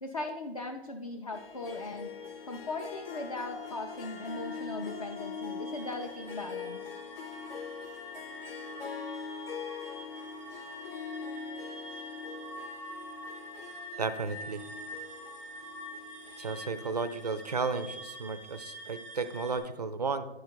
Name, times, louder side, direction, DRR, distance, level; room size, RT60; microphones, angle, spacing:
voice 1, 0.0-2.1 2.5-6.8, left 2 dB, 35° left, 3 dB, 0.4 m, -38 dB
Harp, 1.3-18.1, left 5 dB, 65° left, 0.9 m, -43 dB
sound 1, 2.0-19.6, right 1 dB, 5° left, 0.8 m, -47 dB
voice 2, 14.0-14.6 16.4-20.2, right 4 dB, 40° right, 12 dB, 0.4 m, -33 dB
10.0 x 4.8 x 4.4 m, 1.0 s
hypercardioid pair, 170°, 32 cm